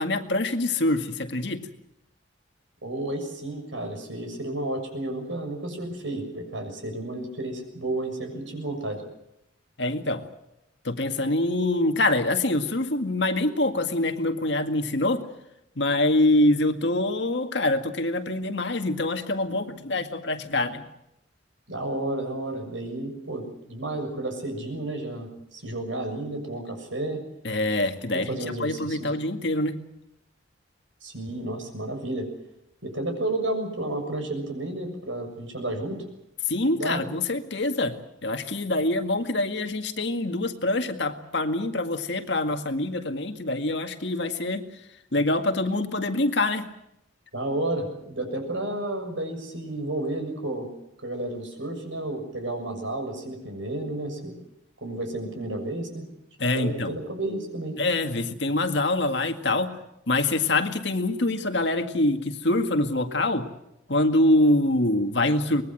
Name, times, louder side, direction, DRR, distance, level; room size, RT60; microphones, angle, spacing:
voice 1, 0.0-1.7 9.8-10.2 10.8-15.2 15.8-20.8 27.4-29.8 36.5-38.0 38.2-44.6 45.1-46.7 56.4-57.0 57.8-59.7 60.1-63.5 63.9-65.6, left 2 dB, 65° left, 6 dB, 2.0 m, -25 dB
voice 2, 2.8-9.0 21.7-27.2 28.1-29.1 31.0-32.3 32.8-36.0 36.5-37.1 47.3-50.7 51.0-54.3 54.8-56.1 56.5-57.8, right 1 dB, 80° right, 5 dB, 6.8 m, -32 dB
24.0 x 20.5 x 7.9 m, 0.84 s
head